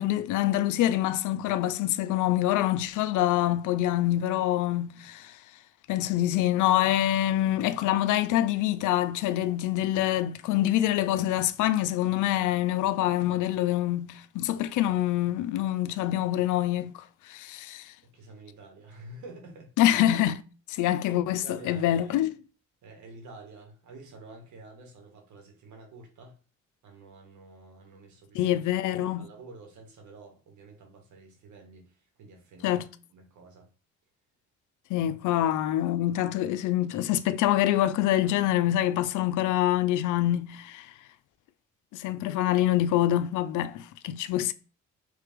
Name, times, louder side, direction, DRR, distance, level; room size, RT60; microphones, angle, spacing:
voice 1, 0.0-5.3 5.9-17.9 19.8-20.4 20.7-22.3 28.3-29.3 32.6-32.9 34.9-40.9 41.9-44.5, left 13 dB, 80° left, 0.5 m, -25 dB
voice 2, 18.0-19.7 21.4-22.2 22.8-26.4 26.8-28.4 29.0-32.8 33.1-33.7, right 2 dB, 75° right, 1.5 m, -49 dB
3.3 x 3.2 x 3.5 m
cardioid pair, 90°, 30 cm